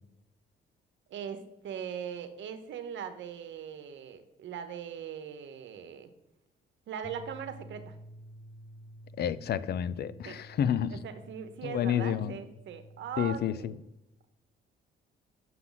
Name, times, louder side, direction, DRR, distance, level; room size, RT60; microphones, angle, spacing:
voice 1, 1.1-6.1 6.9-8.0 10.2-10.4 10.9-13.7, right 8 dB, 70° right, 0.9 m, -40 dB
sound 1, 7.0-13.3, equal, 30° left, 1.5 m, -51 dB
voice 2, 9.2-11.0 11.6-12.3 13.2-13.7, left 9 dB, 55° left, 0.5 m, -30 dB
7.5 x 5.8 x 3.9 m
cardioid pair, 90°, 20 cm